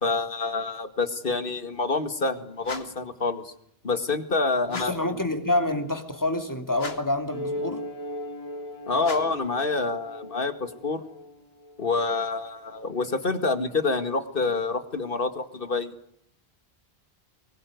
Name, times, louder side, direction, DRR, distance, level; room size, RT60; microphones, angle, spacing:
voice 1, 0.0-3.5 3.8-5.2 8.9-11.0 11.8-15.9, left 3 dB, 60° left, 2.4 m, -27 dB
sound 1, 2.6-3.1 4.7-5.1 6.7-7.2 9.0-9.5, left 3 dB, 80° left, 2.6 m, -39 dB
voice 2, 4.7-7.8, left 1 dB, 20° left, 3.1 m, -27 dB
sound 2, 7.3-12.2, left 1 dB, 35° left, 3.3 m, -37 dB
25.0 x 22.0 x 9.5 m
omnidirectional pair, 1.0 m